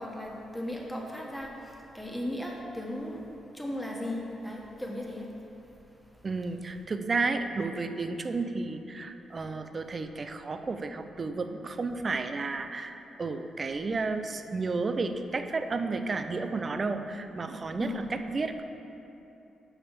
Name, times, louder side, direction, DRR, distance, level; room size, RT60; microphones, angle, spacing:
voice 1, 0.0-3.3 3.5-5.3 17.8-18.1, left 1 dB, 5° left, -2 dB, 1.6 m, -36 dB
voice 2, 6.2-18.6, right 3 dB, 40° right, 8 dB, 0.6 m, -32 dB
7.2 x 5.5 x 6.7 m, 2.9 s
cardioid pair, 65°, 0 cm